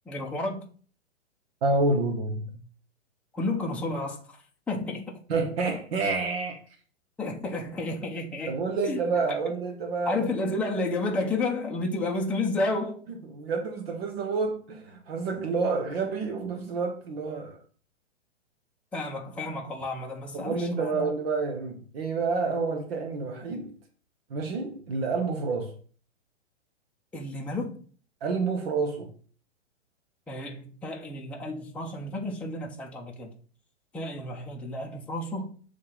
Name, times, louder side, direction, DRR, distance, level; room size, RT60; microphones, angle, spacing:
voice 1, 0.1-0.6 3.3-4.4 4.7-5.2 7.2-9.0 10.1-13.0 18.9-21.0 27.1-27.8 30.3-33.3 33.9-35.5, left 2 dB, 5° left, 0.7 m, -31 dB
voice 2, 1.6-2.6 5.3-6.6 8.5-10.5 13.3-17.6 20.3-23.7 24.3-25.7 28.2-29.1, right 4 dB, 55° right, 1.1 m, -29 dB
7.5 x 3.2 x 3.9 m
hypercardioid pair, 120°, 37 cm